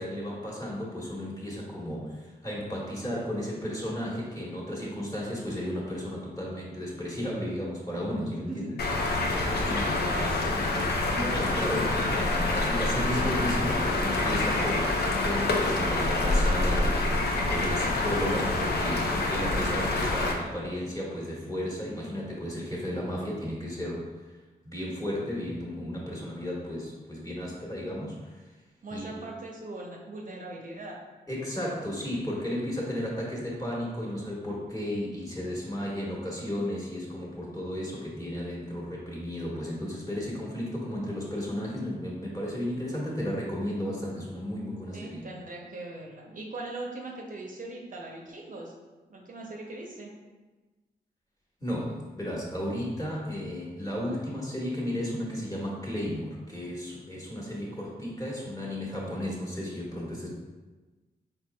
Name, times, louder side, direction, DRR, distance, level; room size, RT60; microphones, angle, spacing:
voice 1, 0.0-8.8 9.6-10.3 11.1-24.1 24.6-28.4 28.9-29.2 31.3-45.2 51.6-60.3, equal, 20° left, -5 dB, 1.3 m, -34 dB
sound 1, 8.8-20.3, left 2 dB, 70° left, 0.6 m, -26 dB
voice 2, 9.4-10.5 28.8-31.0 31.8-31.9 44.9-48.7 49.1-50.1, right 2 dB, 50° right, -1 dB, 0.6 m, -40 dB
4.2 x 3.3 x 2.3 m, 1.2 s
cardioid pair, 65°, 17 cm